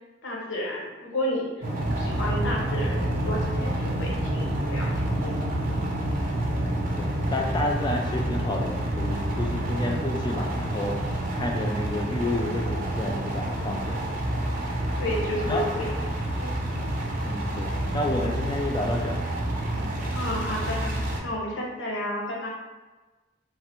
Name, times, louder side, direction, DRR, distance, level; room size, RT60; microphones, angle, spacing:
voice 1, 0.2-1.5 1.9-4.9 5.2-5.4 15.0-15.9 16.4-16.5 20.1-22.5, left 1 dB, 75° left, -2 dB, 0.8 m, -31 dB
sound 1, 1.6-21.2, right 1 dB, 45° right, 0.5 m, -28 dB
voice 2, 6.6-11.0 11.3-14.0 15.0-15.1 15.5-15.6 17.2-19.2 19.7-19.9, left 1 dB, 25° left, 1 dB, 0.4 m, -30 dB
3.1 x 2.1 x 2.9 m, 1.2 s
head